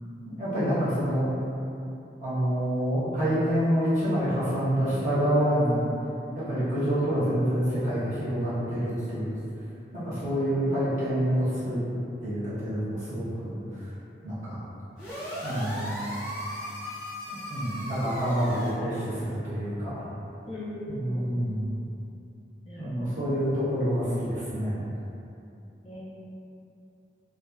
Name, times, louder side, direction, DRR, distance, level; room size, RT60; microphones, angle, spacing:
voice 1, 0.3-1.3 2.2-5.8 6.3-9.4 9.9-11.8 12.2-13.6 14.2-14.6 15.4-16.1 17.3-20.0 20.9-21.8 22.8-24.8, equal, 40° right, -13 dB, 0.9 m, -27 dB
voice 2, 10.5-11.5 20.5-21.5 22.6-23.4 25.8-26.0, equal, 35° left, -9 dB, 0.5 m, -40 dB
sound 1, 15.0-18.7, equal, 5° right, 0.7 m, -37 dB
2.5 x 2.4 x 2.2 m, 2.7 s
head